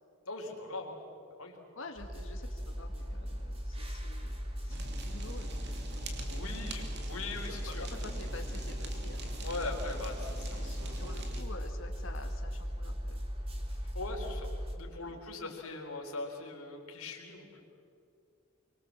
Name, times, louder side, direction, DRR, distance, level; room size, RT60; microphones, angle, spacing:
voice 1, 0.3-1.0 1.4-1.7 6.3-7.9 9.4-11.0 13.9-17.6, left 3 dB, 85° left, 2 dB, 4.0 m, -41 dB
voice 2, 1.8-6.6 7.4-9.7 10.5-13.2 14.9-15.2, left 2 dB, 60° left, 3 dB, 1.9 m, -49 dB
sound 1, 2.0-14.8, equal, 25° right, 2.6 m, -38 dB
Fire, 4.7-11.4, right 2 dB, 50° right, 2.7 m, -46 dB
24.5 x 24.0 x 7.5 m, 2.5 s
head